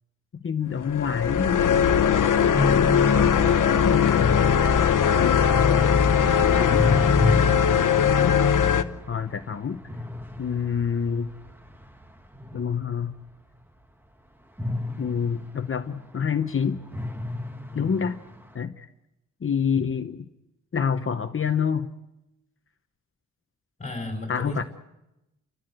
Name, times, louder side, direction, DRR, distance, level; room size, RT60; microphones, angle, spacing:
voice 1, 0.3-1.6 3.2-4.8 5.2-6.1 6.4-7.2 9.1-9.8 10.4-11.3 12.5-13.2 15.0-16.8 17.7-18.2 18.5-18.9 19.4-20.3 20.7-21.9 24.3-24.6, left 7 dB, 40° left, 8 dB, 0.9 m, -27 dB
sound 1, 0.8-8.8, left 7 dB, 80° left, 1.0 m, -20 dB
voice 2, 2.5-3.1 17.7-17.9 23.8-24.6, left 1 dB, 25° left, 2 dB, 5.1 m, -30 dB
sound 2, 6.7-13.3 14.6-16.5 16.8-18.5, left 2 dB, 5° right, 1.1 m, -33 dB
30.0 x 14.0 x 7.9 m, 0.91 s
wide cardioid pair, 165°, 31 cm